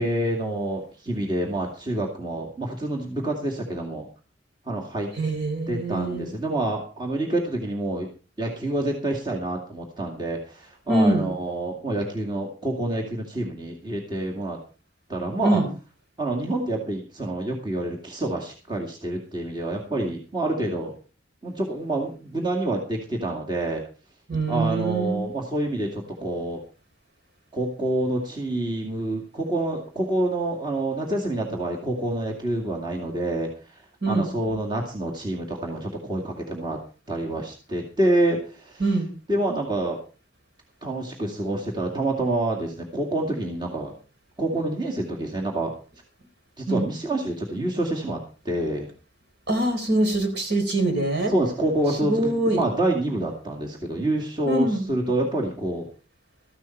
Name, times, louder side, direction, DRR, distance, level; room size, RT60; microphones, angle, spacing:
voice 1, 0.0-4.1 4.7-5.1 5.7-8.1 8.4-14.6 15.1-15.6 16.2-20.9 21.4-23.8 24.5-26.6 27.5-33.5 34.1-36.8 37.1-40.0 40.8-43.9 44.4-45.7 46.6-48.2 48.4-48.9 51.3-55.9, right 1 dB, 25° right, -1 dB, 2.2 m, -27 dB
voice 2, 5.2-6.3 10.9-11.3 15.4-15.7 24.3-25.2 34.0-34.3 38.8-39.1 46.7-46.9 49.5-51.3 52.0-52.6 54.5-54.8, right 2 dB, 55° right, 4 dB, 4.1 m, -23 dB
14.5 x 11.5 x 4.5 m, 0.35 s
head